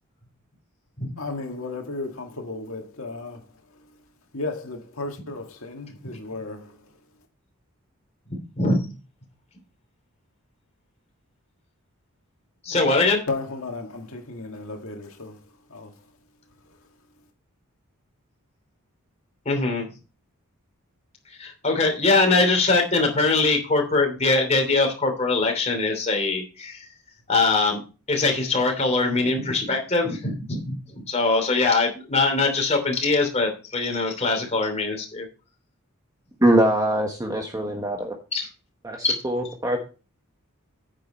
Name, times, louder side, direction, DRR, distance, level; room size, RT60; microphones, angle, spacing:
voice 1, 1.2-3.5 4.3-6.8 13.3-15.4 15.7-16.0, left 3 dB, 65° left, 2.0 m, -34 dB
voice 2, 12.6-13.2 19.4-19.9 21.4-26.8 27.3-27.8 28.1-35.2 38.3-38.5 39.0-39.1, left 3 dB, 30° left, 3.0 m, -22 dB
voice 3, 36.4-38.1 38.8-39.8, right 1 dB, 15° right, 1.2 m, -22 dB
9.6 x 7.6 x 4.2 m
head